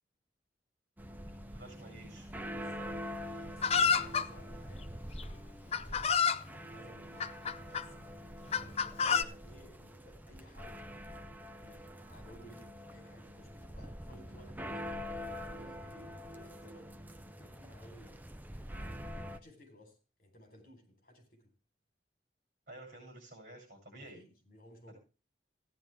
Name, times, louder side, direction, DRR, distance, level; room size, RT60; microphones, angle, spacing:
sound 1, 1.0-19.4, equal, 10° right, 0.6 m, -45 dB
voice 1, 1.4-2.3 22.7-24.2, right 1 dB, 50° right, 7.9 m, -51 dB
voice 2, 2.5-4.9 5.1-7.3 7.7-8.2 8.5-10.9 11.6-15.0 15.5-16.9 17.4-18.2 18.5-21.5 24.1-25.0, left 1 dB, 50° left, 4.0 m, -57 dB
Chicken rooster, 3.6-4.3 5.2-5.3 5.7-6.4 7.2-7.8 8.5-9.2, left 6 dB, 35° left, 0.6 m, -28 dB
16.5 x 10.0 x 3.5 m
head